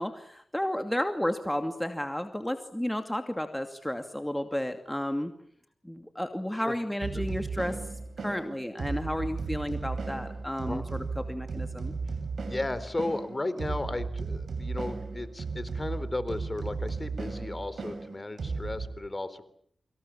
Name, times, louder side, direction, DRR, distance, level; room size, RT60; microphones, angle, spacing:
voice 1, 0.0-5.3 5.8-7.8 8.2-11.9, left 1 dB, 10° left, 7 dB, 2.6 m, -32 dB
sound 1, 7.0-18.9, right 4 dB, 80° right, 6.8 m, -35 dB
voice 2, 12.5-19.5, left 2 dB, 35° left, 13 dB, 3.9 m, -35 dB
27.5 x 25.5 x 7.4 m, 0.66 s
cardioid pair, 40°, 0 cm